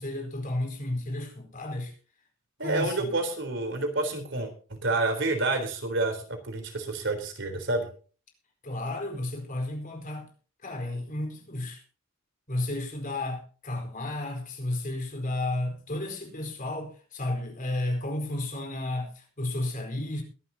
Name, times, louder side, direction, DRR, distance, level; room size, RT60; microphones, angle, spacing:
voice 1, 0.0-1.9 2.6-3.1 8.6-10.3 10.6-11.8 12.5-20.2, left 1 dB, 45° left, 4.4 m, -32 dB
voice 2, 2.6-7.9, right 2 dB, 65° right, 3.8 m, -29 dB
22.0 x 12.0 x 2.9 m
head